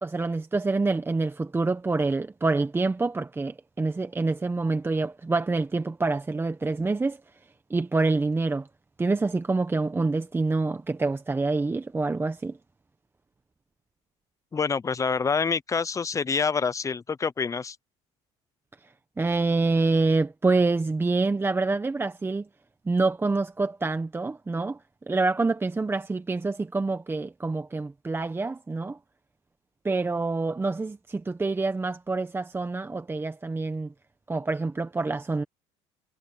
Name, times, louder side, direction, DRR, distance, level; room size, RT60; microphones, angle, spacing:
voice 1, 0.0-7.2 7.7-8.7 9.0-12.6 19.2-22.5 22.9-24.8 25.1-29.0 29.8-33.9 34.3-35.4, right 3 dB, 15° right, 1.2 m, -26 dB
voice 2, 14.5-17.8, left 5 dB, 20° left, 0.8 m, -26 dB
supercardioid pair, 95°, 14 cm